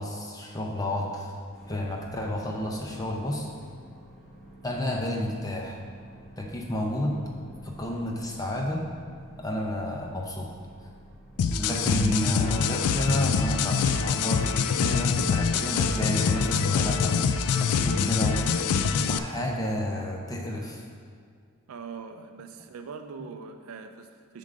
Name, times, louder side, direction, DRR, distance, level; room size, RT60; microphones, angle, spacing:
voice 1, 0.0-1.3 1.7-3.5 4.6-5.8 6.4-7.2 7.6-8.8 9.4-10.5 11.5-18.7 19.1-20.8, left 1 dB, 15° left, 0 dB, 0.6 m, -31 dB
sound 1, 1.5-17.2, right 1 dB, ahead, 1.3 m, -49 dB
sound 2, 11.4-19.2, left 6 dB, 85° left, 0.3 m, -25 dB
voice 2, 21.7-24.4, right 5 dB, 70° right, 7 dB, 0.4 m, -42 dB
7.3 x 3.8 x 6.4 m, 2.1 s
head